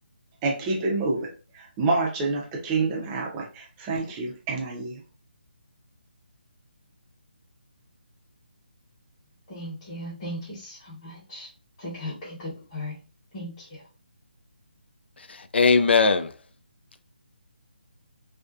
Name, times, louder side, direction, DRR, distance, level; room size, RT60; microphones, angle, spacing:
voice 1, 0.4-1.3 1.5-5.0, right 3 dB, 10° right, 0.4 m, -27 dB
voice 2, 9.5-11.5 11.8-13.0 13.3-13.9, left 1 dB, 20° left, 1.0 m, -37 dB
voice 3, 15.2-16.3, left 4 dB, 90° left, 0.4 m, -20 dB
2.5 x 2.1 x 2.3 m
hypercardioid pair, 170°, 6 cm